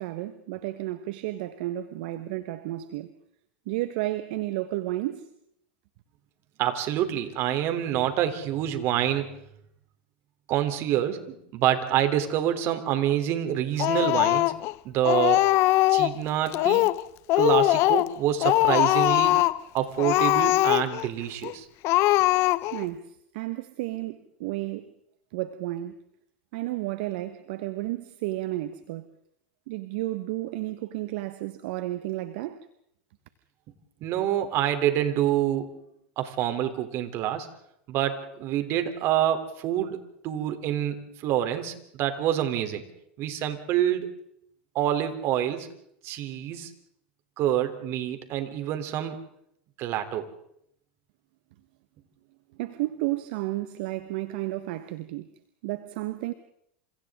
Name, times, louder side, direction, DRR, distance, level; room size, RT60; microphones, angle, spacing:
voice 1, 0.0-3.1 3.7-5.3 22.7-24.9 25.3-26.0 26.5-29.1 29.7-32.6 52.6-55.3 55.6-56.3, right 16 dB, 65° right, 1.4 m, -32 dB
voice 2, 6.6-9.4 10.5-14.5 14.8-15.5 15.9-16.8 17.4-19.4 19.7-21.7 34.0-35.8 36.2-37.5 37.9-40.0 40.2-42.8 43.2-44.1 44.8-45.7 46.0-46.7 47.4-49.2 49.8-50.3, right 11 dB, 50° right, 3.5 m, -27 dB
Speech, 13.8-14.7 15.0-16.2 16.5-17.0 17.3-18.1 18.4-19.6 20.0-21.1 21.4-21.5 21.8-22.9, left 18 dB, 50° left, 0.9 m, -21 dB
30.0 x 27.5 x 3.8 m
hypercardioid pair, 105°, 6 cm